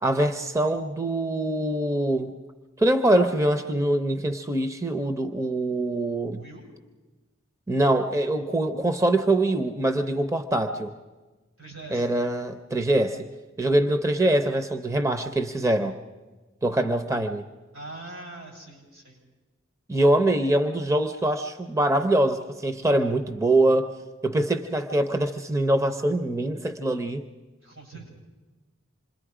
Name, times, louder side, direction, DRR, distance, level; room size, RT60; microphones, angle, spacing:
voice 1, 0.0-2.3 2.8-6.4 7.7-10.9 11.9-13.3 13.6-16.0 16.6-17.4 19.9-23.9 24.2-27.2, right 1 dB, 15° right, 7 dB, 0.6 m, -24 dB
voice 2, 11.6-12.1 16.7-16.9 17.7-19.2 27.6-28.1, right 2 dB, 85° right, -1 dB, 7.4 m, -43 dB
27.0 x 21.5 x 4.9 m, 1.2 s
head